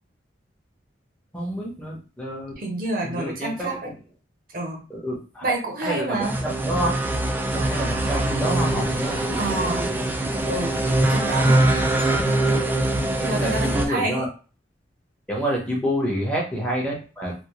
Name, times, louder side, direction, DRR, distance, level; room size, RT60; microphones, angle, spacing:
voice 1, 1.3-2.5 3.0-3.8 4.9-5.5 5.8-6.9 7.5-10.1 12.4-12.6 13.2-14.3 15.3-17.3, equal, 5° left, -4 dB, 1.0 m, -28 dB
voice 2, 2.6-3.9 4.5-4.8 5.4-6.4 9.1-9.9 10.4-12.6 13.2-14.3, right 2 dB, 50° right, 1 dB, 0.7 m, -29 dB
sound 1, 6.2-13.9, right 1 dB, 10° right, 0.3 m, -23 dB
3.4 x 2.2 x 3.0 m, 0.36 s
head